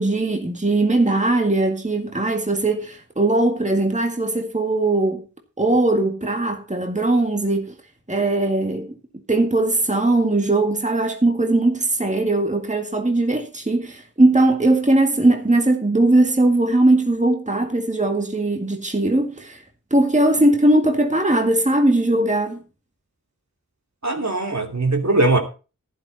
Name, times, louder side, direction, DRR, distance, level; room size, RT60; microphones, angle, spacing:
voice 1, 0.0-5.2 5.6-7.7 8.1-8.9 9.3-19.6 19.9-22.6, right 2 dB, 20° right, 1.9 m, -19 dB
voice 2, 24.0-25.4, right 2 dB, 55° right, 2.6 m, -20 dB
11.5 x 11.0 x 4.1 m
wide cardioid pair, 40°, 33 cm